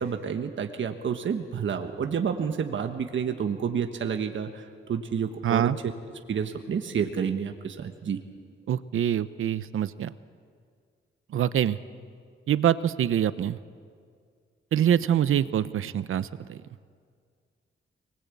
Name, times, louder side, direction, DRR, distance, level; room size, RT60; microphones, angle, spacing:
voice 1, 0.0-5.9 6.3-8.2, right 7 dB, 65° right, 5 dB, 1.4 m, -29 dB
voice 2, 5.4-5.8 8.7-10.1 11.3-11.8 12.5-13.6 14.7-16.6, right 10 dB, 85° right, 14 dB, 0.8 m, -25 dB
24.0 x 20.0 x 8.5 m, 2.1 s
cardioid pair, 100°, 21 cm